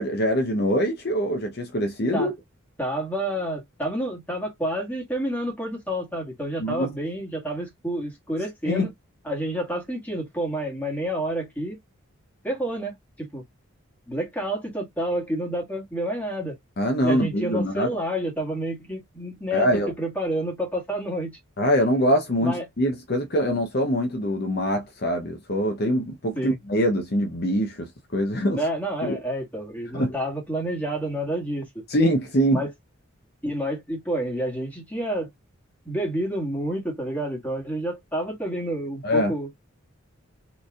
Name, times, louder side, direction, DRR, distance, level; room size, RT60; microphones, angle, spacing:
voice 1, 0.0-2.3 6.6-6.9 8.6-8.9 16.8-17.9 19.5-19.9 21.6-28.6 29.0-29.2 29.9-30.1 31.9-32.7 39.0-39.3, equal, 50° left, 0.7 m, -24 dB
voice 2, 2.8-8.9 9.2-11.8 12.4-13.4 14.1-16.5 17.0-19.7 20.0-21.4 22.4-22.6 26.3-26.6 28.5-31.7 32.5-32.7 33.4-35.3 35.8-39.5, right 1 dB, 5° left, 1.8 m, -29 dB
4.2 x 3.3 x 2.4 m
head